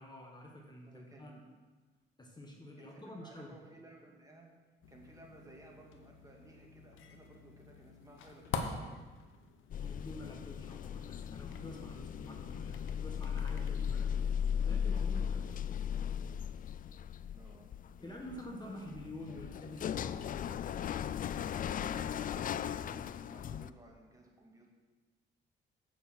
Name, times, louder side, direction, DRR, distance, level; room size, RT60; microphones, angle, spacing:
voice 1, 0.0-1.3 2.2-3.6 9.8-16.0 18.0-20.6, left 1 dB, 20° left, 0 dB, 1.5 m, -48 dB
voice 2, 0.9-1.5 2.8-4.5 4.9-9.0 17.3-17.7 18.0-18.8 19.3-19.4 21.6-24.7, right 2 dB, 15° right, 0 dB, 2.0 m, -57 dB
sound 1, 4.8-14.1, left 5 dB, 80° left, 1.0 m, -47 dB
sound 2, 9.7-23.7, left 8 dB, 45° left, 0.4 m, -37 dB
8.5 x 7.1 x 6.0 m, 1.3 s
cardioid pair, 90°, 20 cm